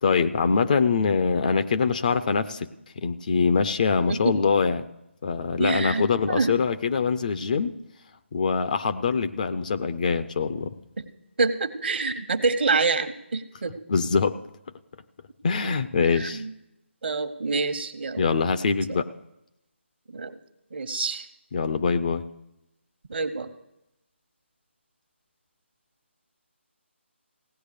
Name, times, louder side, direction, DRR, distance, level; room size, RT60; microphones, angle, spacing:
voice 1, 0.0-2.7 3.0-4.9 5.2-7.7 8.3-10.8 13.9-14.4 15.4-16.4 18.2-19.1 21.5-22.2, left 5 dB, 40° left, 11 dB, 0.5 m, -24 dB
voice 2, 5.6-6.5 11.0-11.1 11.4-13.7 15.6-16.5 17.0-18.3 20.1-20.4 20.7-21.3 23.1-23.5, right 4 dB, 55° right, 10 dB, 1.1 m, -27 dB
17.0 x 9.7 x 6.6 m, 0.87 s
figure-of-eight pair, 150°, 7 cm